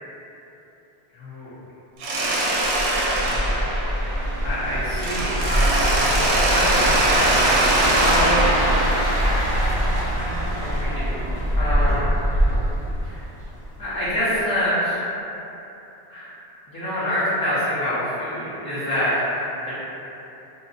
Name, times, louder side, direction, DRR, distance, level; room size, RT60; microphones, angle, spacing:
voice 1, 1.1-1.5 2.1-2.5 3.3-3.5 3.9-6.2 6.5-8.5 10.2-12.5 13.0-13.2 13.8-15.0 16.1-16.3 16.7-19.7, equal, 25° left, -15 dB, 0.7 m, -27 dB
Mechanisms, 2.0-4.6 5.0-9.8, right 1 dB, 75° right, 0.8 m, -23 dB
sound 1, 2.6-13.7 14.1-14.3, equal, 30° right, 0.9 m, -23 dB
2.6 x 2.2 x 3.8 m, 3.0 s
omnidirectional pair, 1.1 m